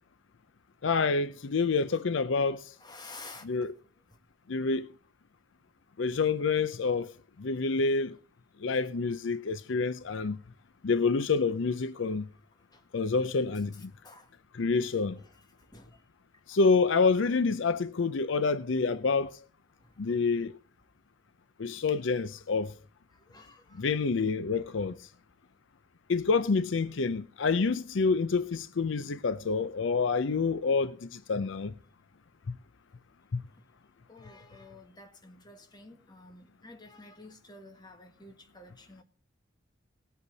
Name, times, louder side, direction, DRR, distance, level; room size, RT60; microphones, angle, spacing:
voice 1, 0.8-2.7 3.4-3.7 4.5-4.9 6.0-7.1 7.4-8.1 8.6-10.4 10.8-12.2 12.9-13.9 14.5-15.2 16.5-19.4 20.0-20.5 21.6-22.7 23.8-25.0 26.1-31.7 32.5-32.6 33.3-33.4, left 4 dB, 70° left, 0.5 m, -27 dB
voice 2, 2.8-3.5 9.5-9.6 12.1-12.2 12.7-12.8 13.7-14.3 15.2-16.0 19.8-19.9 23.1-23.9 34.1-39.0, left 2 dB, 20° left, 1.6 m, -51 dB
19.0 x 8.2 x 4.0 m
head